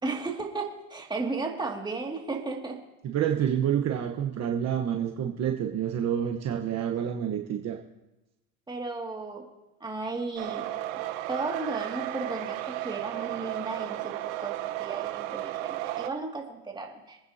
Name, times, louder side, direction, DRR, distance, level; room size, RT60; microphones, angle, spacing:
voice 1, 0.0-2.8 8.7-9.5 9.8-10.7 11.0-17.2, right 3 dB, 10° right, 0 dB, 2.4 m, -34 dB
voice 2, 3.0-7.8, right 9 dB, 40° right, 3 dB, 1.2 m, -28 dB
sound 1, 10.4-16.1, right 14 dB, 70° right, 1.2 m, -34 dB
27.5 x 9.5 x 2.9 m, 0.98 s
supercardioid pair, 110°, 40 cm